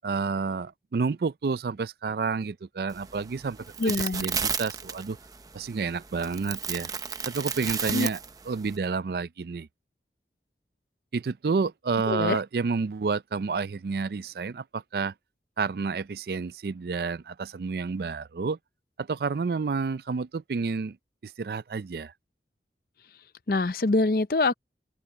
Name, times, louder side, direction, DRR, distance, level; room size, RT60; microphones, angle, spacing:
voice 1, 0.0-3.6 3.8-5.2 5.5-6.9 7.3-8.2 8.5-9.7 11.1-15.1 15.6-18.6 19.0-21.0 21.2-22.1, right 4 dB, 60° right, 0.4 m, -30 dB
sound 1, 2.9-8.8, right 6 dB, 20° right, 0.7 m, -34 dB
voice 2, 3.8-4.2 7.9-8.1 12.1-12.4 23.5-24.5, left 2 dB, 55° left, 0.6 m, -24 dB
open air
head